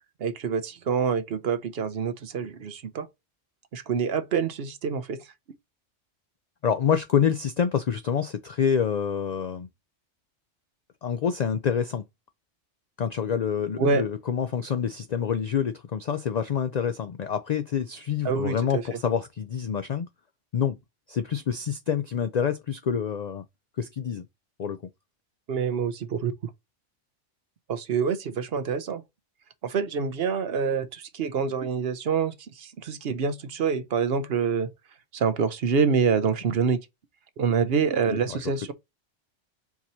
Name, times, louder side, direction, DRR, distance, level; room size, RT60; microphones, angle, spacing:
voice 1, 0.2-3.1 3.7-5.2 13.8-14.0 18.2-18.8 25.5-26.3 27.7-29.0 29.6-34.7 35.1-36.8 37.4-38.7, right 6 dB, 60° right, 0.9 m, -26 dB
voice 2, 6.6-9.7 11.0-12.0 13.0-20.1 20.5-20.8 21.1-23.4 23.8-24.3 24.6-24.8 38.1-38.5, left 7 dB, 70° left, 0.4 m, -27 dB
4.7 x 2.7 x 4.2 m
omnidirectional pair, 1.2 m